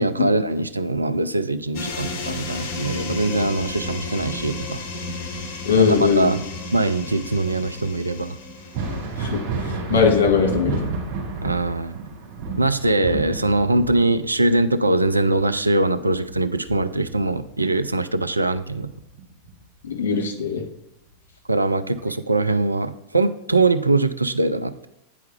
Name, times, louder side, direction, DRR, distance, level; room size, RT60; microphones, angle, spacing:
voice 1, 0.0-4.8 5.8-5.9 6.2-6.4 6.7-8.4 11.4-12.0 12.6-18.9 21.5-24.9, right 2 dB, 80° right, 10 dB, 0.4 m, -22 dB
sound 1, 1.7-9.3, left 2 dB, 50° left, 1.1 m, -33 dB
voice 2, 5.6-6.3 9.2-10.9 19.8-20.6, left 5 dB, 65° left, 0 dB, 1.8 m, -20 dB
Thunder, 8.6-17.9 18.3-19.5 21.1-21.2 22.0-22.1, right 3 dB, 50° right, 2.5 m, -31 dB
9.2 x 4.6 x 3.4 m, 0.85 s
figure-of-eight pair, 90°, 0 cm